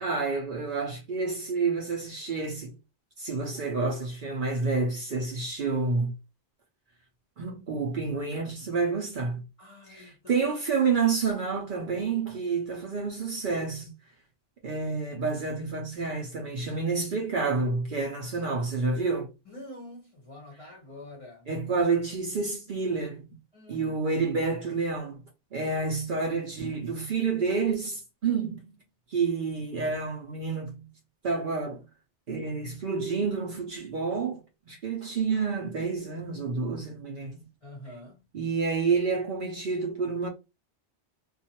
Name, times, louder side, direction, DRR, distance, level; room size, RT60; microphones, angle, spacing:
voice 1, 0.0-2.7 3.2-6.1 7.4-9.4 9.9-13.9 14.6-19.3 21.5-23.3 23.7-25.2 25.5-28.8 29.1-30.9 31.2-31.8 32.3-34.4 34.7-37.4 38.3-40.3, right 4 dB, 55° right, 0.7 m, -29 dB
voice 2, 9.6-10.5 19.5-21.5 23.5-24.0 25.6-25.9 37.6-38.3, left 1 dB, 35° left, 0.7 m, -46 dB
2.5 x 2.3 x 2.8 m
omnidirectional pair, 1.2 m